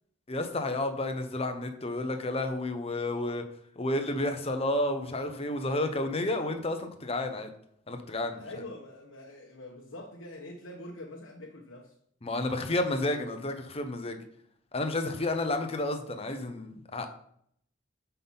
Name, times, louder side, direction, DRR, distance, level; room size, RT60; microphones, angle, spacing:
voice 1, 0.3-3.4 3.8-7.5 7.9-8.5 12.2-14.2 14.7-17.1, left 2 dB, 30° left, 7 dB, 0.9 m, -31 dB
voice 2, 8.3-11.9, left 1 dB, 90° left, 0 dB, 1.0 m, -44 dB
6.1 x 5.5 x 5.5 m, 0.67 s
head